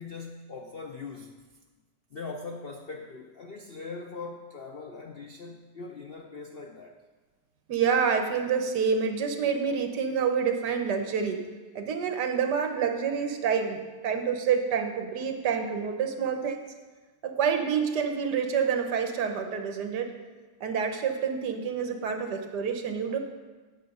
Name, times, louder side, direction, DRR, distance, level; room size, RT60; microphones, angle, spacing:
voice 1, 0.0-1.4 2.1-7.0, left 4 dB, 65° left, 3 dB, 0.5 m, -41 dB
voice 2, 7.7-11.4 11.7-16.7 17.2-20.1 20.6-23.2, right 6 dB, 75° right, 6 dB, 1.5 m, -28 dB
9.9 x 6.9 x 5.4 m, 1.3 s
omnidirectional pair, 1.9 m